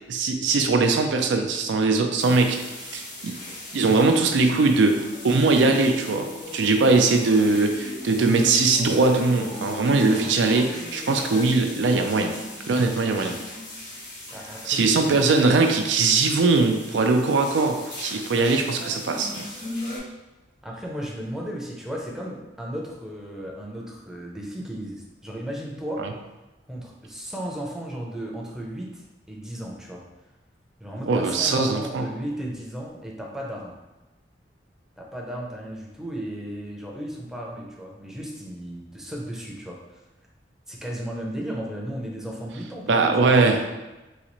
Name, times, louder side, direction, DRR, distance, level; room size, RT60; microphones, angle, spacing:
voice 1, 0.1-3.4 3.7-12.4 12.7-13.4 14.7-19.3 26.0-26.1 31.0-32.1 42.9-43.7, right 3 dB, 75° right, 5 dB, 0.4 m, -21 dB
sound 1, 2.2-20.0, left 2 dB, 85° left, 1.3 m, -37 dB
voice 2, 14.3-15.3 20.6-26.0 26.7-30.0 30.8-33.8 35.0-39.8 40.7-43.6, equal, 5° right, -3 dB, 0.6 m, -35 dB
3.9 x 2.4 x 3.0 m, 1.1 s
head